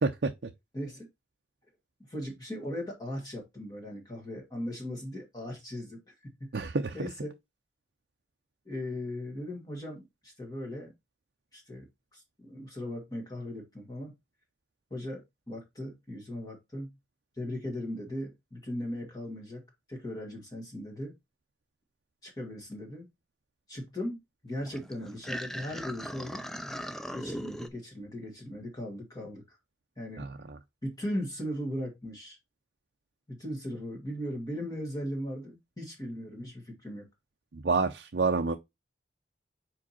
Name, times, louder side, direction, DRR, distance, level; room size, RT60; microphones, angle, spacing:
voice 1, 0.0-0.5 6.5-7.1 30.2-30.6 37.5-38.6, right 4 dB, 60° right, 0.5 m, -29 dB
voice 2, 0.7-1.1 2.1-6.5 6.9-7.3 8.7-10.9 11.5-11.9 12.1-14.1 14.9-16.9 17.4-21.1 22.2-23.1 23.7-24.2 24.4-26.4 27.1-29.6 30.0-30.3 30.8-32.4 33.3-37.1, left 1 dB, 20° left, 1.8 m, -38 dB
sound 1, 24.6-27.7, equal, ahead, 0.4 m, -39 dB
5.0 x 4.6 x 4.1 m
head